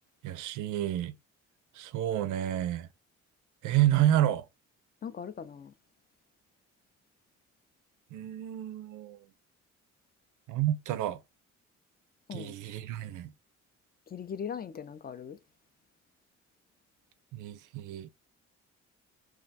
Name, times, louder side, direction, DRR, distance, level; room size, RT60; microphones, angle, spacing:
voice 1, 0.2-1.2 1.7-2.9 3.6-4.4 8.1-9.2 10.5-11.2 12.3-13.3 17.3-18.1, right 12 dB, 85° right, 0.5 m, -29 dB
voice 2, 5.0-5.7 12.3-12.5 14.1-15.4, left 7 dB, 30° left, 0.4 m, -39 dB
2.4 x 2.2 x 3.9 m
cardioid pair, 90°, 30 cm